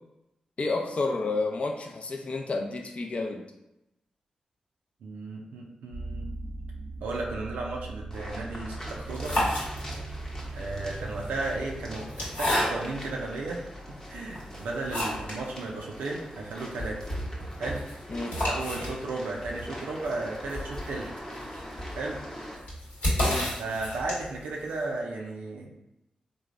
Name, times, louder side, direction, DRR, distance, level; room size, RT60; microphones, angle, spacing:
voice 1, 0.6-3.4 18.1-18.4 23.2-23.5, left 3 dB, 50° left, 3 dB, 0.4 m, -30 dB
voice 2, 5.0-6.3 7.0-9.4 10.5-17.1 17.6-17.8 18.5-21.1 21.9-22.2 23.6-25.7, right 2 dB, 85° right, -2 dB, 0.3 m, -34 dB
sound 1, 5.9-17.3, right 2 dB, 15° right, 0.7 m, -41 dB
sound 2, 8.1-22.6, equal, 20° left, 0.8 m, -44 dB
sound 3, 9.0-10.2 11.1-13.1 13.7-13.8 14.3-15.5 15.8-15.9 16.1-16.2 16.6-24.5, equal, 75° left, 1.2 m, -31 dB
3.1 x 2.0 x 2.4 m, 0.90 s
supercardioid pair, 40°, 3 cm